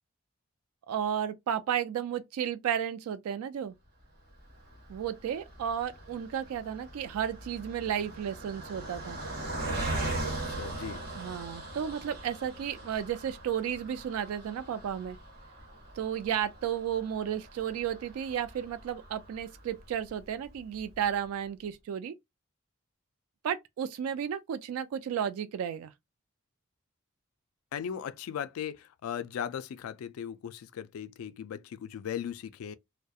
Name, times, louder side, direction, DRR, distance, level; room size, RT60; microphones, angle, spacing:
voice 1, 0.9-3.7 4.9-9.2 11.1-15.2 16.0-22.1 23.4-25.9, right 9 dB, 85° right, 0.3 m, -33 dB
Car passing by, 4.4-19.9 20.4-20.5 20.8-21.0, right 2 dB, 45° right, 1.4 m, -40 dB
voice 2, 10.5-11.1 27.7-32.8, left 8 dB, 80° left, 0.3 m, -38 dB
2.3 x 2.1 x 2.6 m
head